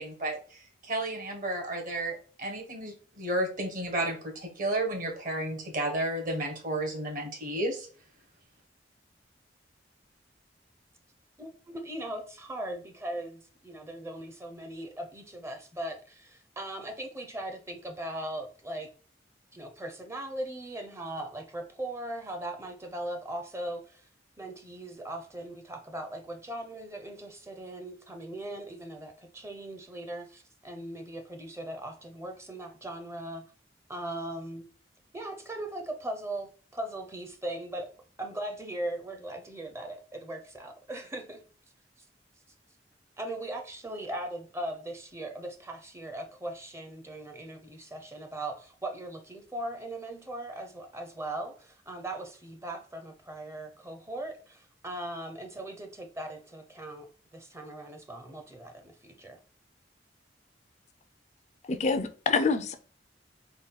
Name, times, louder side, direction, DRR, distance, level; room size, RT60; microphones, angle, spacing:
voice 1, 0.0-7.9, right 1 dB, 50° right, 1.2 m, -32 dB
voice 2, 11.4-18.9 19.5-24.1 24.4-33.5 33.9-34.6 35.1-37.9 38.2-41.4 43.2-57.1 57.3-59.4, right 1 dB, 15° right, 0.6 m, -39 dB
voice 3, 61.6-62.8, left 4 dB, 40° left, 0.4 m, -26 dB
3.7 x 2.3 x 3.9 m
head